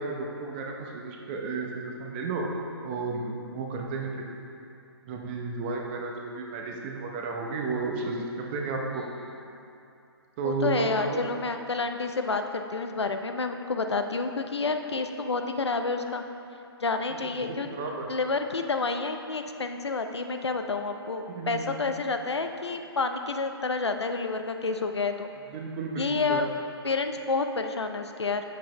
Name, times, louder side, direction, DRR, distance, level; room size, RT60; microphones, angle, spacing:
voice 1, 0.0-2.4 2.8-4.2 5.1-9.0 10.4-11.2 17.1-18.1 21.3-21.7 25.5-26.4, right 3 dB, 25° right, 0 dB, 0.7 m, -33 dB
voice 2, 10.4-16.2 16.8-25.3 26.0-26.5 26.8-28.4, left 4 dB, 80° left, 7 dB, 0.5 m, -29 dB
7.2 x 7.1 x 3.1 m, 2.7 s
figure-of-eight pair, 135°, 14 cm